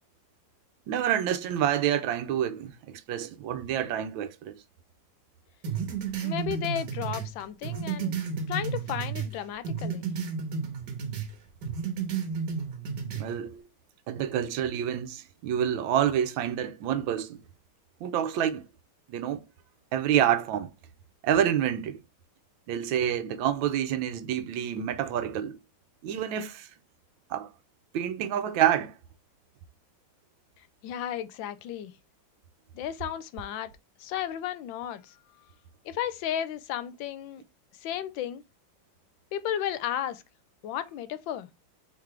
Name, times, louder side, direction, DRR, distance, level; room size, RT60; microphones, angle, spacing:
voice 1, 0.9-4.6 13.2-13.6 14.1-17.4 18.0-18.7 19.1-19.4 19.9-20.7 21.2-22.0 22.7-25.6 26.0-26.7 27.3-27.5 27.9-28.9, right 10 dB, 90° right, 1.4 m, -28 dB
sound 1, 5.6-9.3 9.6-11.3 11.6-13.3, right 6 dB, 65° right, 1.6 m, -32 dB
voice 2, 6.2-8.2 8.5-10.0 30.6-31.9 32.7-33.7 34.0-35.2 35.8-37.4 37.7-38.4 39.3-40.2 40.6-41.5, left 10 dB, 80° left, 1.3 m, -34 dB
4.5 x 3.6 x 3.2 m
omnidirectional pair, 2.1 m